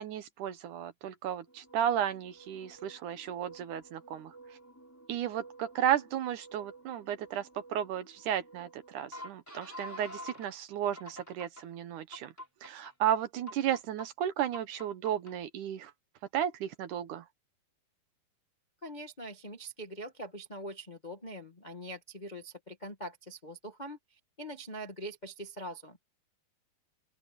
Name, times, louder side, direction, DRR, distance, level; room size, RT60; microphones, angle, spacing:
voice 1, 0.0-4.3 5.1-12.3 12.6-15.9 16.3-17.2, right 10 dB, 70° right, 2.2 m, -33 dB
sound 1, 1.5-10.5 11.0-11.6 12.1-12.9 13.5-14.1 14.5-15.3, equal, 5° left, 4.1 m, -50 dB
voice 2, 18.8-26.0, right 1 dB, 75° left, 0.4 m, -43 dB
open air
omnidirectional pair, 4.3 m